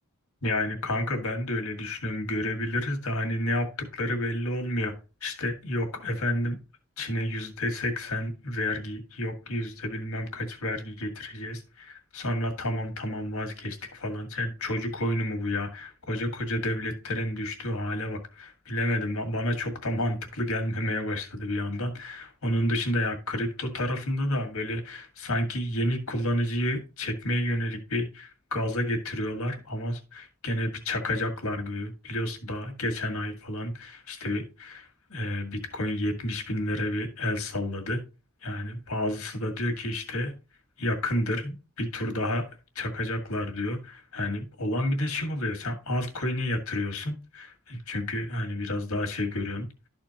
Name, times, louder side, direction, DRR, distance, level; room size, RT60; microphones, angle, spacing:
voice 1, 0.4-3.7 3.9-4.9 5.2-6.6 7.0-38.0 38.4-40.3 40.8-42.5 42.8-49.7, left 1 dB, 70° left, 1.8 m, -30 dB
12.5 x 4.4 x 2.9 m
head